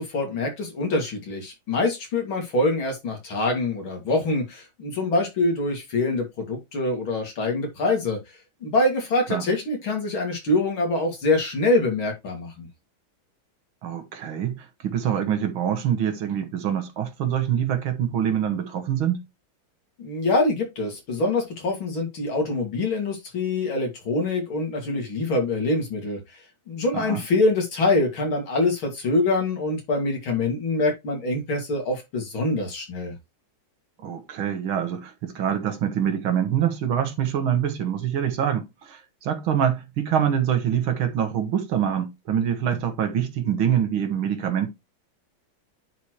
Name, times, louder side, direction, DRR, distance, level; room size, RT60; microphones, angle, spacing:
voice 1, 0.0-8.2 8.6-12.7 20.0-26.2 26.7-33.2, left 2 dB, 80° left, 3.4 m, -25 dB
voice 2, 13.8-19.2 26.9-27.2 34.0-44.7, right 9 dB, 80° right, 2.1 m, -25 dB
10.0 x 4.2 x 3.2 m
omnidirectional pair, 2.2 m